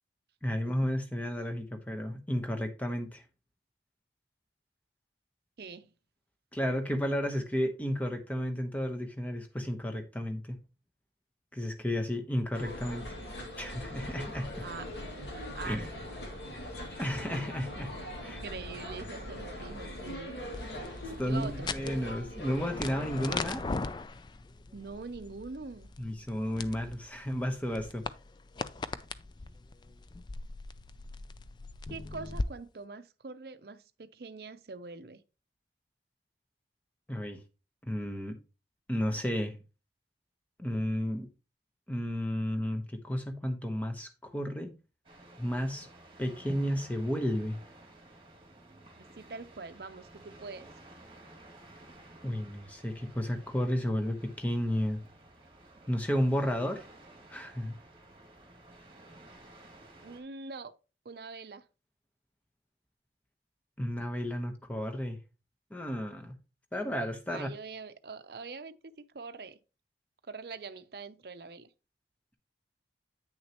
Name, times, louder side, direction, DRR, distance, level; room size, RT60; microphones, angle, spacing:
voice 1, 0.4-3.2 6.5-10.6 11.5-13.1 13.6-14.6 15.6-15.9 17.0-18.0 18.2-18.4 21.0-23.7 26.0-28.0 37.1-37.4 37.8-38.4 38.9-39.6 40.6-41.3 41.9-44.7 45.4-45.9 46.2-47.6 52.2-55.0 55.9-56.9 57.3-57.7 63.8-65.2 65.7-66.3 66.7-67.5, equal, 10° left, 1.0 m, -32 dB
voice 2, 5.6-5.9 14.6-15.0 15.5-15.9 18.2-20.4 21.1-21.7 24.7-25.9 31.9-35.2 49.0-50.7 60.0-60.7 61.0-61.6 67.3-68.7 69.1-69.6 70.3-71.7, right 4 dB, 60° right, 0.6 m, -43 dB
sound 1, 12.5-23.5, left 1 dB, 80° left, 2.2 m, -41 dB
sound 2, 20.5-32.5, left 3 dB, 25° left, 0.3 m, -40 dB
sound 3, 45.0-60.2, right 2 dB, 30° right, 2.1 m, -54 dB
8.9 x 6.4 x 2.9 m
head